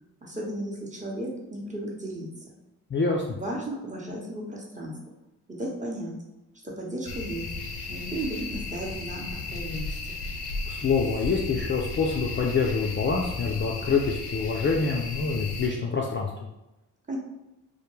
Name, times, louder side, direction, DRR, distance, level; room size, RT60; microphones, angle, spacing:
voice 1, 0.2-2.6 3.3-5.0 5.5-6.2 6.6-7.5 7.9-10.2 17.1-17.2, right 1 dB, 20° right, -3 dB, 0.8 m, -35 dB
voice 2, 2.9-3.3 10.7-16.3, left 4 dB, 30° left, -1 dB, 0.4 m, -26 dB
sound 1, 7.1-15.7, left 3 dB, 75° left, 0.6 m, -35 dB
2.2 x 2.1 x 3.1 m, 0.94 s
supercardioid pair, 50°, 39 cm